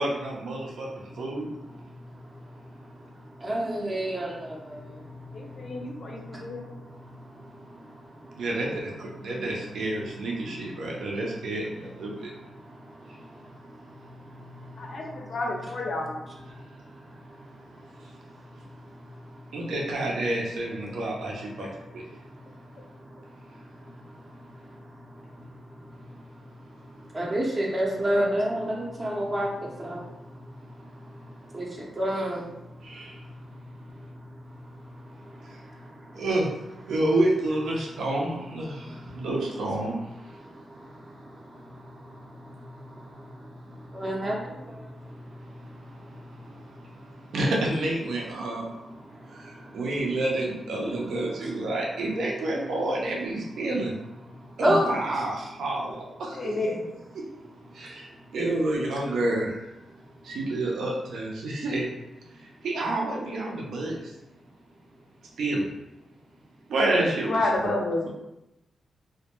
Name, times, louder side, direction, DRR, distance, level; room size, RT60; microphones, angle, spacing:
voice 1, 0.0-1.5 8.4-12.3 19.5-22.0 32.8-33.2 35.4-35.6 36.1-36.5 36.8-40.0 47.3-48.7 49.3-53.9 54.6-56.5 57.1-57.2 58.3-59.7 60.2-61.9 62.4-64.1 65.4-65.7 66.7-67.7 68.0-68.1, right 2 dB, 80° right, -2 dB, 0.5 m, -29 dB
voice 2, 3.4-7.5 10.8-10.9 12.7-15.2 16.5-16.6 17.1-17.6 18.5-18.7 19.0-19.1 24.2-24.3 24.9-25.0 27.1-30.4 31.0-32.5 34.7-36.2 38.7-39.2 39.5-39.6 40.4-45.6 45.9-46.7 49.1-49.8 54.4-54.8, equal, 35° right, -3 dB, 0.5 m, -33 dB
voice 3, 5.3-6.6 14.8-16.1 21.6-21.7 27.8-28.3 56.3-56.8 67.2-68.0, left 2 dB, 60° left, -1 dB, 0.5 m, -30 dB
2.1 x 2.1 x 2.9 m, 0.89 s
cardioid pair, 80°, 0 cm